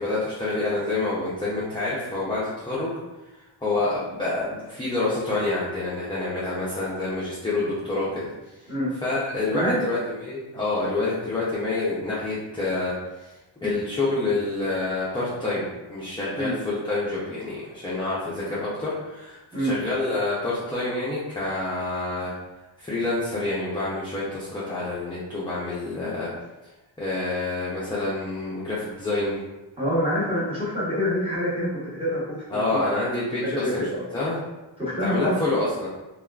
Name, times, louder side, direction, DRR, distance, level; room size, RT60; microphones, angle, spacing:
voice 1, 0.0-2.9 3.6-8.3 9.0-13.3 13.6-22.3 22.8-26.3 27.0-29.4 32.5-33.8 34.1-34.4 35.0-35.9, left 2 dB, 10° left, -9 dB, 0.4 m, -27 dB
voice 2, 29.8-31.7 32.0-32.8 33.4-34.0 34.8-35.4, equal, 10° right, -9 dB, 1.0 m, -26 dB
3.4 x 2.3 x 2.3 m, 1.1 s
wide cardioid pair, 175°, 46 cm